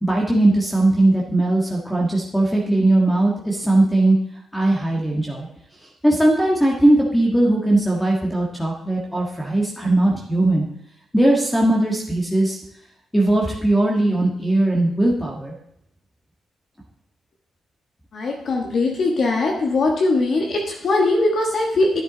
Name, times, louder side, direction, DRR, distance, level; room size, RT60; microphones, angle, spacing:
voice 1, 0.0-4.2 4.5-5.5 6.0-10.7 11.1-12.6 13.1-15.5, right 1 dB, 5° left, -2 dB, 1.5 m, -19 dB
voice 2, 18.1-21.9, left 2 dB, 45° left, 0 dB, 1.4 m, -20 dB
12.0 x 10.0 x 3.9 m, 0.74 s
wide cardioid pair, 170°, 0 cm